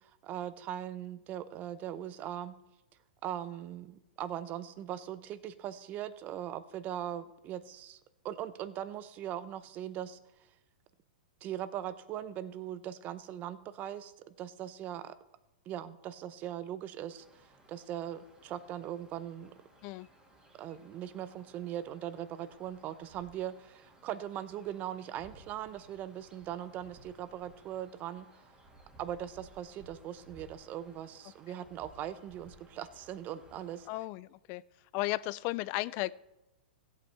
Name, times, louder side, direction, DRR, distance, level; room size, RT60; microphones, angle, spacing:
voice 1, 0.0-2.6 3.2-8.0 8.2-10.2 11.4-15.2 15.7-19.5 20.5-28.4 29.0-33.9, right 11 dB, 35° right, 15 dB, 0.6 m, -40 dB
sound 1, 17.1-34.0, right 1 dB, 15° right, 2.1 m, -60 dB
voice 2, 33.9-34.6 34.9-36.1, left 20 dB, 40° left, 20 dB, 0.3 m, -34 dB
15.5 x 8.3 x 3.4 m, 0.97 s
hypercardioid pair, 125°, 5 cm